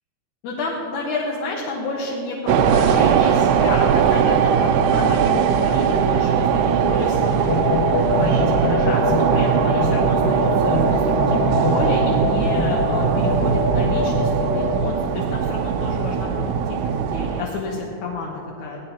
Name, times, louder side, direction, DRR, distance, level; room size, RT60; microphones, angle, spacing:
voice 1, 0.4-18.8, left 3 dB, 85° left, -3 dB, 2.7 m, -29 dB
sound 1, 2.5-17.4, right 8 dB, 90° right, 2.0 m, -20 dB
sound 2, 7.5-14.9, left 3 dB, 65° left, 1.2 m, -24 dB
17.0 x 13.0 x 2.9 m, 3.0 s
omnidirectional pair, 3.4 m